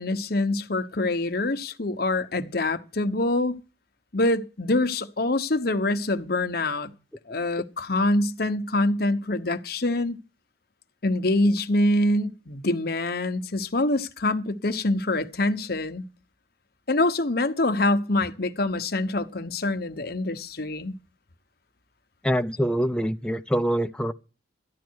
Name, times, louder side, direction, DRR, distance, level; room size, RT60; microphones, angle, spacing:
voice 1, 0.0-3.6 4.1-6.9 7.3-10.2 11.0-16.0 16.9-21.0, left 2 dB, 60° left, 1.1 m, -25 dB
voice 2, 22.2-24.1, equal, 5° left, 0.5 m, -25 dB
13.5 x 10.5 x 4.7 m
head